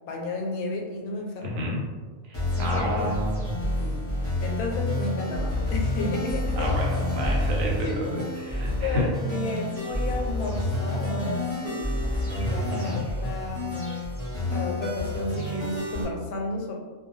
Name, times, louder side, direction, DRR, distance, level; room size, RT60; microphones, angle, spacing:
voice 1, 0.1-1.7 2.6-3.1 3.8-6.7 7.6-8.0 8.5-11.9 12.3-13.7 14.4-16.7, left 2 dB, 90° left, 0 dB, 1.1 m, -33 dB
voice 2, 1.4-1.8 2.3-3.6 6.6-9.0 12.7-13.0, equal, 70° right, -2 dB, 1.0 m, -30 dB
sound 1, 2.3-16.0, left 1 dB, 15° left, 0.6 m, -29 dB
2.5 x 2.2 x 3.0 m, 1.4 s
omnidirectional pair, 1.5 m